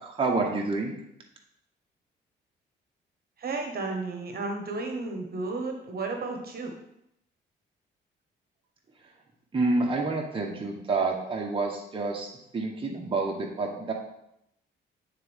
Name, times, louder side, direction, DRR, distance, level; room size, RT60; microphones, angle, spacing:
voice 1, 0.0-0.9 9.5-13.9, right 3 dB, 25° right, 0 dB, 1.1 m, -28 dB
voice 2, 3.4-6.7, right 3 dB, 50° right, 3 dB, 1.2 m, -33 dB
8.9 x 3.7 x 3.6 m, 0.80 s
cardioid pair, 90°, 20 cm